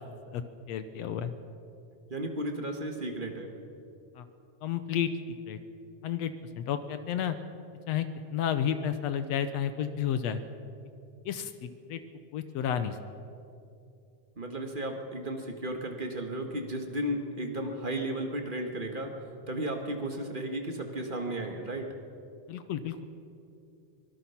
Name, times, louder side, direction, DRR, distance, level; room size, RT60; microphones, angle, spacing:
voice 1, 0.7-1.3 4.2-4.3 4.6-5.1 5.5-5.6 6.0-7.4 7.9-8.1 8.3-10.4 11.3-12.0 12.3-13.0 22.5-23.0, left 9 dB, 70° left, 11 dB, 1.9 m, -31 dB
voice 2, 2.1-3.5 14.4-19.1 19.5-21.9, right 1 dB, 30° right, 3 dB, 0.9 m, -34 dB
24.5 x 18.5 x 5.8 m, 2.6 s
omnidirectional pair, 3.4 m